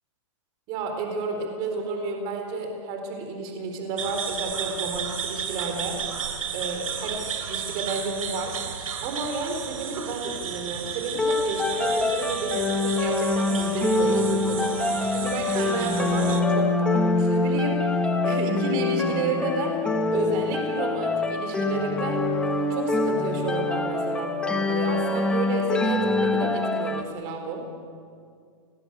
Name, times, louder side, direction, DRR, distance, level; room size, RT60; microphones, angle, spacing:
voice 1, 0.7-6.0 6.5-7.2 7.4-8.6 9.0-14.7 15.1-17.8 18.2-19.8 20.1-22.2 22.7-27.6, right 3 dB, 30° right, 4 dB, 4.2 m, -31 dB
sound 1, 4.0-16.4, right 7 dB, 85° right, 3.5 m, -33 dB
sound 2, 11.2-27.0, left 3 dB, 5° left, 1.0 m, -25 dB
29.5 x 20.0 x 8.2 m, 2.2 s
hypercardioid pair, 170°, 17 cm